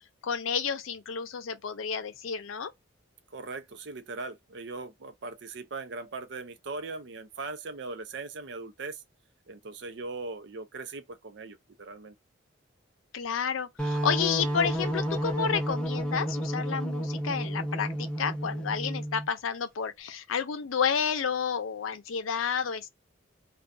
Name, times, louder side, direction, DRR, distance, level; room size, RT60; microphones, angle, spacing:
voice 1, 0.2-2.7 13.1-22.9, left 6 dB, 90° left, 0.5 m, -30 dB
voice 2, 3.3-9.0 9.5-12.1, right 3 dB, 60° right, 0.5 m, -39 dB
sound 1, 13.8-19.3, equal, 5° left, 0.5 m, -31 dB
2.5 x 2.3 x 2.3 m
head